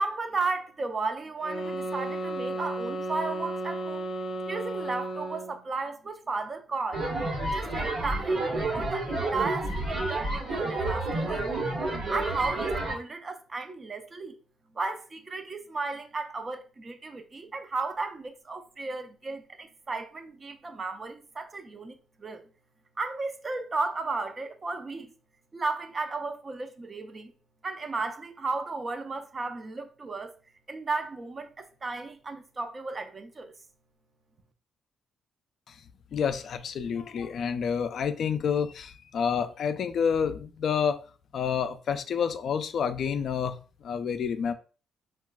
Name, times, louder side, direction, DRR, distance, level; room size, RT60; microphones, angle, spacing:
voice 1, 0.0-4.1 4.5-7.1 7.4-11.7 12.1-14.4 14.7-22.4 23.0-25.1 25.5-27.3 27.6-30.4 30.7-33.5, right 3 dB, 30° right, 0.5 m, -34 dB
sound 1, 1.4-5.6, right 2 dB, 45° left, 0.7 m, -34 dB
sound 2, 6.9-13.0, right 2 dB, 60° right, 1.1 m, -30 dB
voice 2, 36.1-41.0 41.3-43.6 43.8-44.5, left 7 dB, 60° left, 0.3 m, -28 dB
3.8 x 2.3 x 2.2 m
cardioid pair, 90°, 0 cm